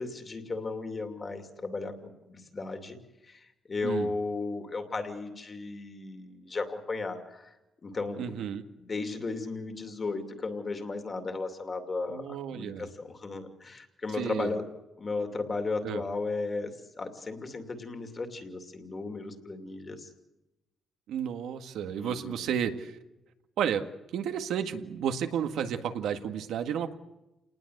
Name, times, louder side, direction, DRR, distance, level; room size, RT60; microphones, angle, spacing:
voice 1, 0.0-3.0 3.2-7.6 7.8-8.3 8.8-14.6 15.0-20.1 21.9-22.5, left 3 dB, 25° left, 6 dB, 2.6 m, -35 dB
voice 2, 8.2-8.6 12.1-12.9 14.2-14.5 15.8-16.0 21.1-23.0 23.6-23.8 24.1-26.9, right 8 dB, 80° right, 7 dB, 1.8 m, -32 dB
29.5 x 19.5 x 8.0 m, 0.98 s
cardioid pair, 180°, 0 cm